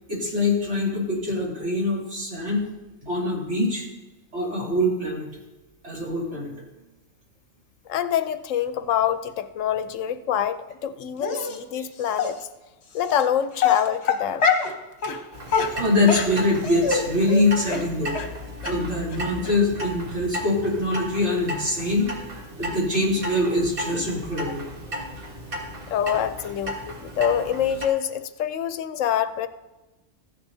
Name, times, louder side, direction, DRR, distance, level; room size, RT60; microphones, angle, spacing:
voice 1, 0.1-2.7 3.0-3.8 4.3-5.3 5.8-6.6 11.8-11.9 15.1-15.2 15.7-18.2 18.6-24.6, left 2 dB, 65° right, -5 dB, 3.3 m, -24 dB
voice 2, 7.9-12.4 12.9-14.5 24.5-24.6 25.9-29.5, left 9 dB, 80° left, 11 dB, 1.0 m, -26 dB
Dog, 11.2-11.6 12.2-12.3 13.1-13.2 13.6-14.7 15.0-15.2 15.5-17.0 17.3-17.4 17.7-17.8 18.2-18.3 18.6-18.7 19.1-19.2 19.4-19.5, left 6 dB, 60° left, 1.2 m, -23 dB
Clock, 15.3-27.9, equal, 45° right, 1.8 m, -35 dB
14.5 x 10.5 x 2.7 m, 1.1 s
omnidirectional pair, 1.3 m